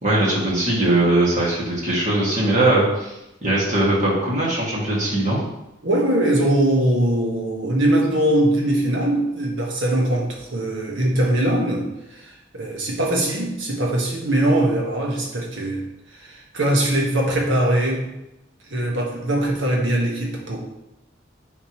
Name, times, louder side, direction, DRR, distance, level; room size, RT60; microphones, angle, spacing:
voice 1, 0.0-5.4, right 1 dB, 40° right, -6 dB, 2.4 m, -20 dB
voice 2, 5.8-15.8 16.2-18.1 18.7-20.6, right 1 dB, 80° right, -1 dB, 1.7 m, -21 dB
10.5 x 4.1 x 3.2 m, 0.91 s
head